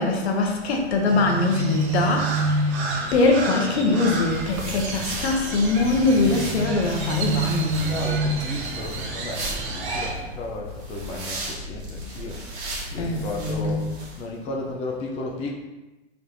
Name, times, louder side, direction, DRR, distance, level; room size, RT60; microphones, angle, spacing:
voice 1, 0.0-7.9 13.0-13.9, left 3 dB, 70° left, 2 dB, 0.9 m, -23 dB
Crow, 1.1-10.1, right 2 dB, 35° right, 0.7 m, -28 dB
sound 1, 4.0-14.2, right 1 dB, 50° right, 1.2 m, -36 dB
voice 2, 7.8-13.9 14.2-15.5, left 3 dB, 20° left, -1 dB, 0.4 m, -34 dB
4.0 x 3.4 x 2.6 m, 1.1 s
hypercardioid pair, 110°, 34 cm